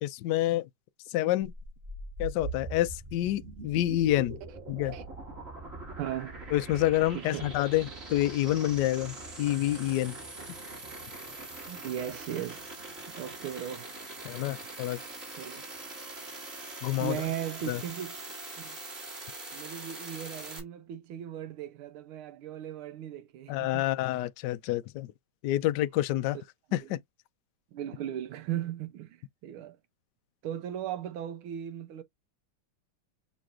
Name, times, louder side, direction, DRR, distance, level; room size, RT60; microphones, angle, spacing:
voice 1, 0.0-0.7 1.1-1.5 2.2-4.4 4.7-5.0 6.5-10.2 14.2-15.0 16.8-17.2 17.7-17.8 23.5-25.1 25.4-26.4 26.7-27.0, left 14 dB, 85° left, 0.9 m, -28 dB
sound 1, 1.4-20.6, right 2 dB, 30° right, 2.1 m, -42 dB
voice 2, 6.0-6.4 7.1-7.5 11.7-12.9 13.2-13.9 15.4-15.6 17.0-18.8 19.5-23.8 26.7-26.9 27.7-29.8 30.4-32.0, right 10 dB, 80° right, 1.5 m, -37 dB
6.7 x 3.1 x 2.4 m
omnidirectional pair, 2.4 m